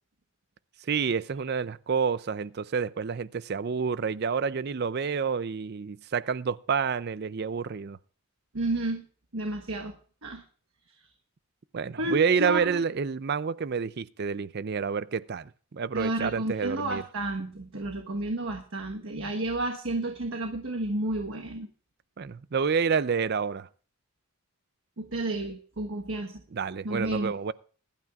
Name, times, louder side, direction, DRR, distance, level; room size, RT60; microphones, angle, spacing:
voice 1, 0.8-8.0 11.7-17.0 22.2-23.7 26.5-27.5, right 6 dB, 45° right, 0.5 m, -28 dB
voice 2, 8.5-9.0 9.3-9.9 10.2-10.4 12.0-12.7 15.9-21.7 25.0-26.3 26.8-27.3, right 2 dB, 65° right, 1.2 m, -31 dB
21.5 x 12.0 x 2.4 m
head